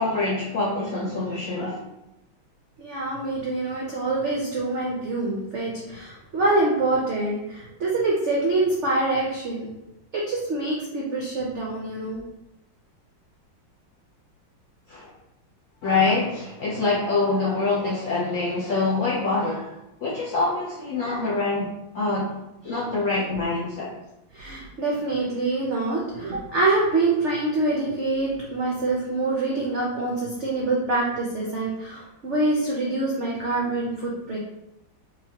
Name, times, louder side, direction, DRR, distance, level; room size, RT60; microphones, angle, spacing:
voice 1, 0.0-1.8 14.9-15.1 15.8-19.7 20.0-22.3 22.6-23.9, left 3 dB, 65° left, -6 dB, 0.8 m, -25 dB
voice 2, 2.8-9.7 10.1-12.2 24.3-34.4, right 2 dB, 70° right, -3 dB, 0.6 m, -25 dB
4.6 x 3.2 x 2.9 m, 0.91 s
omnidirectional pair, 2.1 m